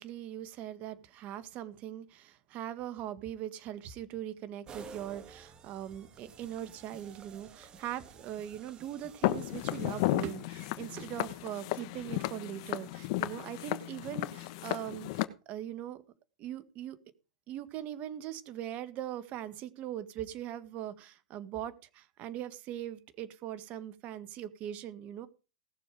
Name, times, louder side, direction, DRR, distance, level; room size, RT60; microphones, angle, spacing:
voice 1, 0.0-16.0 16.4-17.0 17.5-25.3, right 11 dB, 35° right, 12 dB, 1.9 m, -41 dB
sound 1, 4.7-10.7, right 5 dB, 20° right, 2.0 m, -53 dB
Walk footsteps, 9.2-15.3, left 17 dB, 55° left, 1.3 m, -34 dB
18.5 x 7.1 x 5.1 m, 0.33 s
hypercardioid pair, 130°, 4 cm